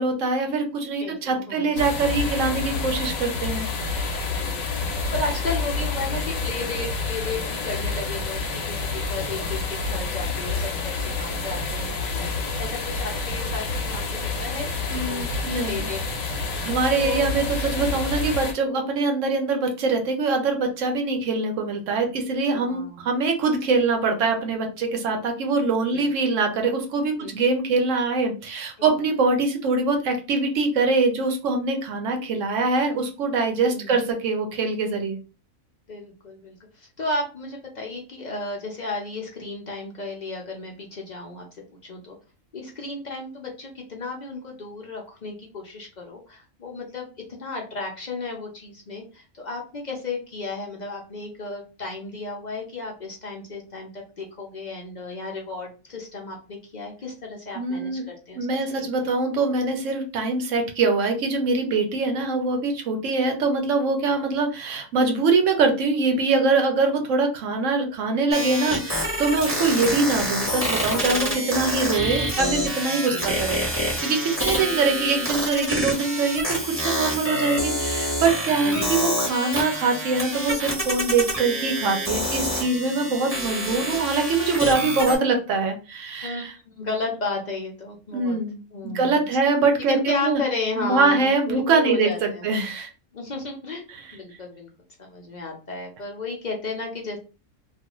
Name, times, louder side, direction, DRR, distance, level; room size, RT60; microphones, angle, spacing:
voice 1, 0.0-4.2 14.9-15.9 16.6-35.2 57.5-58.0 58.4-86.5 88.1-88.6 88.8-90.4 90.8-92.9 93.9-94.0, right 3 dB, 75° right, 4 dB, 1.0 m, -23 dB
voice 2, 1.0-1.8 4.2-4.6 5.1-15.3 15.6-16.4 16.9-17.3 22.5-23.0 25.9-26.1 27.2-27.3 28.8-28.9 33.7-33.9 35.9-42.2 42.5-58.4 58.7-59.1 69.7-69.9 73.1-73.3 74.5-74.7 78.6-79.0 83.7-83.9 86.2-88.4 88.7-89.3 89.9-92.5 93.1-93.9 94.1-94.7 95.0-97.2, left 3 dB, 50° left, 0 dB, 0.5 m, -34 dB
sound 1, 1.8-18.5, left 3 dB, 80° left, 1.1 m, -28 dB
sound 2, 68.3-85.2, equal, 10° right, 1.0 m, -27 dB
2.5 x 2.4 x 2.9 m, 0.33 s
omnidirectional pair, 1.4 m